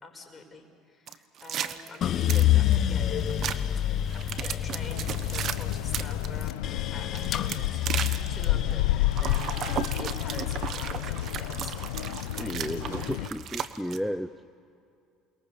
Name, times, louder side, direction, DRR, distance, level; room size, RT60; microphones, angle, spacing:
voice 1, 0.0-3.5 4.1-6.7 6.9-13.4, left 3 dB, 30° left, 3 dB, 5.6 m, -46 dB
sound 1, 1.1-2.8 3.3-3.6 4.1-6.3 7.1-8.4 9.1-14.0, right 9 dB, 55° right, 1.2 m, -35 dB
sound 2, 2.0-12.2 12.7-13.4, left 11 dB, 55° left, 1.0 m, -29 dB
sound 3, 4.8-13.3, left 14 dB, 85° left, 0.7 m, -31 dB
voice 2, 12.4-14.3, equal, ahead, 10 dB, 0.7 m, -33 dB
29.0 x 22.0 x 6.9 m, 2.4 s
hypercardioid pair, 80°, 0 cm